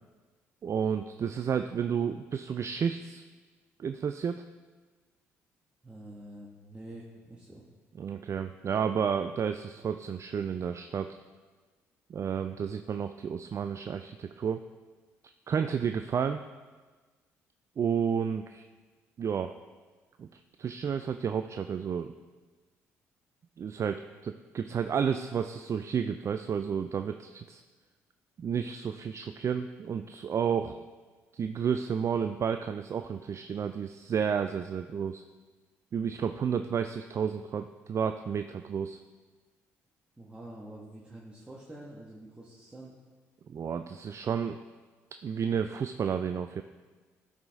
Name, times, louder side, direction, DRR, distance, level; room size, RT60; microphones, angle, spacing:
voice 1, 0.6-3.2 3.8-4.4 8.0-11.2 12.1-14.6 15.5-16.4 17.8-18.7 19.2-19.5 20.2-22.1 23.6-27.6 28.4-30.8 31.3-35.2 35.9-39.0 43.5-44.6 45.2-46.6, right 7 dB, 45° right, 8 dB, 0.4 m, -31 dB
voice 2, 5.8-7.6 40.2-42.9, right 1 dB, 15° right, -5 dB, 1.5 m, -47 dB
12.0 x 4.9 x 3.6 m, 1.3 s
hypercardioid pair, 55°, 7 cm